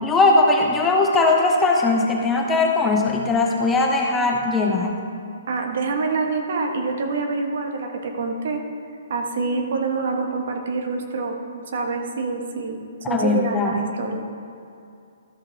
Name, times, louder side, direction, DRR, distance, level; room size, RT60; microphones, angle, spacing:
voice 1, 0.0-4.9 13.1-13.9, left 3 dB, 10° left, 0 dB, 0.9 m, -19 dB
voice 2, 5.5-8.7 9.1-14.2, right 4 dB, 65° right, 3 dB, 1.3 m, -26 dB
13.5 x 5.6 x 4.0 m, 2.5 s
hypercardioid pair, 145°, 0 cm